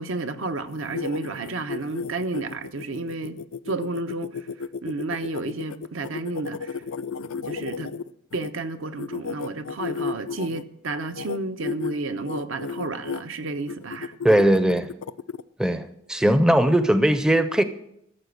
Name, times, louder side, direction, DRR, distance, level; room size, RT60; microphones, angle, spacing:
voice 1, 0.0-3.4 3.7-4.5 4.8-6.8 7.4-7.9 8.3-14.1, right 3 dB, 75° right, 0.9 m, -31 dB
sound 1, 0.7-8.5 9.0-10.6 11.1-11.4 11.6-11.9 12.2-13.2 13.7-15.4, left 5 dB, 85° left, 0.4 m, -33 dB
voice 2, 14.2-14.9 15.6-17.6, right 1 dB, 5° right, 0.5 m, -19 dB
14.0 x 7.0 x 6.6 m
head